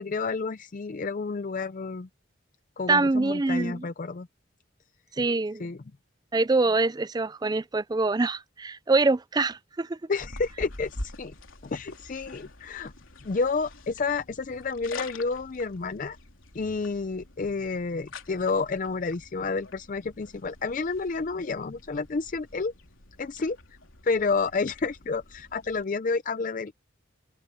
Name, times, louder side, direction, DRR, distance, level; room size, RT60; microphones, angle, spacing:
voice 1, 0.0-2.1 2.8-4.3 5.6-5.8 10.1-11.3 11.6-12.9 13.2-16.2 16.5-22.7 23.2-23.6 24.0-26.7, left 4 dB, 40° left, 0.4 m, -30 dB
voice 2, 2.9-3.9 5.2-5.7 6.3-10.0, right 3 dB, 20° right, 0.4 m, -25 dB
sound 1, 10.2-25.9, left 2 dB, 85° left, 3.5 m, -46 dB
open air
head